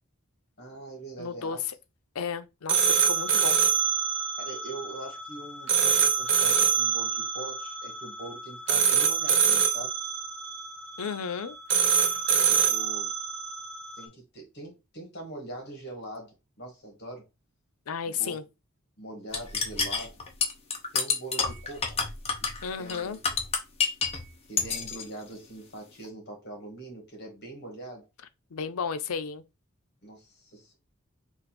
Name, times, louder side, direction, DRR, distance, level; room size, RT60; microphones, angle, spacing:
voice 1, 0.6-1.6 4.4-10.0 12.4-13.1 13.9-17.3 18.0-18.4 19.0-20.2 20.9-22.0 22.4-23.2 24.5-28.1 30.0-30.8, right 2 dB, 50° left, 1.7 m, -42 dB
voice 2, 1.2-1.6 2.1-3.6 11.0-11.6 17.9-18.4 22.6-23.2 28.5-29.4, left 6 dB, 85° left, 0.5 m, -33 dB
sound 1, 2.7-14.0, right 7 dB, 60° right, 0.7 m, -25 dB
sound 2, 19.3-24.2 24.6-25.0, left 5 dB, 30° left, 0.9 m, -28 dB
4.0 x 2.5 x 4.2 m
head